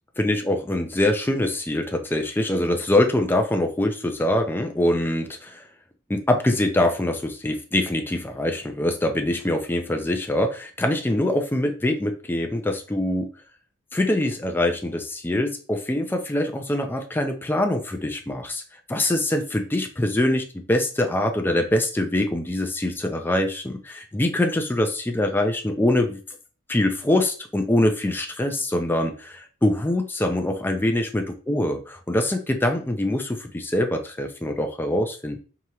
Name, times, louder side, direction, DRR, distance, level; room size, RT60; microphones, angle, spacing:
voice 1, 0.2-5.6 6.1-13.3 13.9-18.6 18.9-26.2 26.7-35.4, left 1 dB, 10° left, 4 dB, 0.4 m, -24 dB
4.8 x 2.8 x 2.8 m, 0.37 s
head